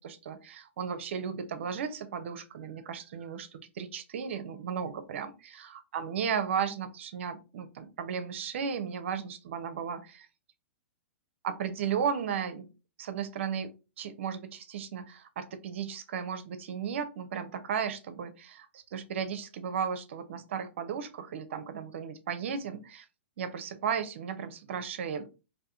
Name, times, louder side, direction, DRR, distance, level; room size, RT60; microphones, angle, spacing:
voice 1, 0.0-10.3 11.4-12.7 13.0-13.7 14.0-23.0 23.4-25.3, right 7 dB, 65° right, 10 dB, 0.6 m, -35 dB
3.5 x 2.6 x 2.6 m, 0.30 s
hypercardioid pair, 120°, 7 cm